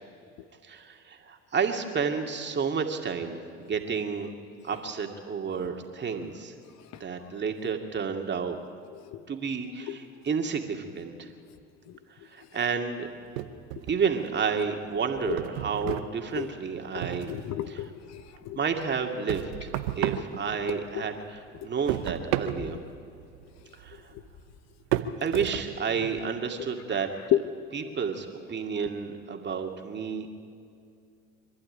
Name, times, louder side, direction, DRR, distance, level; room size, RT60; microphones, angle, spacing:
voice 1, 0.6-4.3 4.6-6.5 7.0-8.6 9.3-11.3 12.3-13.1 13.9-17.3 17.7-17.8 18.6-22.8 23.8-24.1 25.2-27.1 27.7-30.3, right 6 dB, 35° right, 3 dB, 2.4 m, -31 dB
voice 2, 8.9-9.3 9.9-10.0 11.9-12.0 13.8-13.9 15.2-15.4 15.8-16.0 16.4-16.5 16.9-18.6 20.1-20.2 20.7-21.1 24.1-24.2 27.3-27.4, left 14 dB, 60° left, 12 dB, 1.1 m, -32 dB
sound 1, 13.4-14.4 14.8-17.7 18.0-21.1 21.4-26.3, right 12 dB, 85° right, 1.0 m, -34 dB
25.0 x 11.5 x 10.0 m, 2.4 s
supercardioid pair, 85°, 31 cm